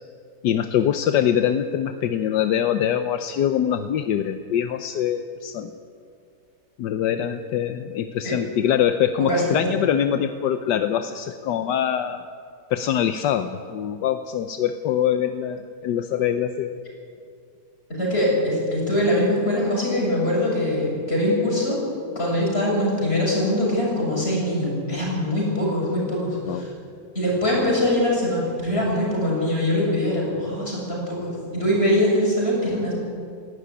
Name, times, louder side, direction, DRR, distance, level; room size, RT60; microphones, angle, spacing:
voice 1, 0.4-5.7 6.8-12.3 12.7-16.8 26.5-26.6, left 9 dB, 80° left, 9 dB, 1.4 m, -23 dB
voice 2, 9.2-9.6 17.9-21.8 22.2-26.7 27.1-32.9, left 1 dB, 35° left, -4 dB, 7.8 m, -23 dB
18.0 x 16.5 x 9.8 m, 2.3 s
omnidirectional pair, 1.9 m